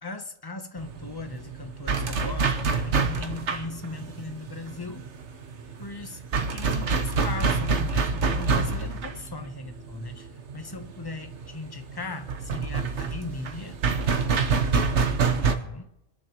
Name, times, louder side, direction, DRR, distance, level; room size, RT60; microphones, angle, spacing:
voice 1, 0.0-5.1 5.8-13.8 14.7-15.9, left 3 dB, 20° left, 0.8 m, -38 dB
sound 1, 0.8-15.5, right 4 dB, 60° right, 1.3 m, -27 dB
27.0 x 10.5 x 3.0 m
omnidirectional pair, 1.4 m